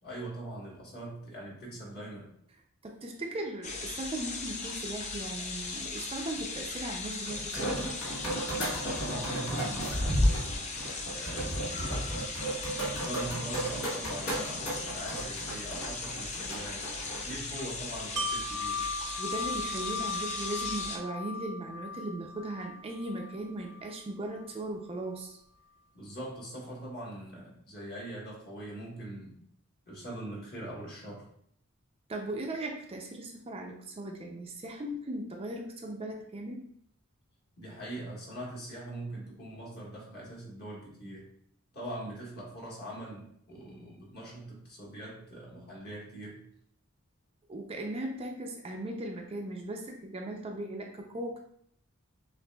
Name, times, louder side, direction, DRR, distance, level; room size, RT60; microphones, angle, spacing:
voice 1, 0.0-2.3 8.8-10.6 11.1-12.1 12.8-16.9 17.2-18.8 25.9-29.4 29.9-31.2 37.6-41.3 41.7-46.4, right 1 dB, 50° left, -4 dB, 1.5 m, -42 dB
voice 2, 2.8-7.9 10.8-10.9 19.2-25.4 32.1-36.7 47.5-51.4, right 1 dB, 25° right, 1 dB, 0.4 m, -38 dB
sound 1, 3.6-21.0, left 3 dB, 35° left, 0.5 m, -38 dB
sound 2, 7.3-17.3, equal, 80° left, 1.6 m, -33 dB
Wind chime, 18.2-24.0 24.4-24.5, left 2 dB, 85° right, 0.8 m, -37 dB
6.5 x 2.5 x 2.3 m, 0.67 s
head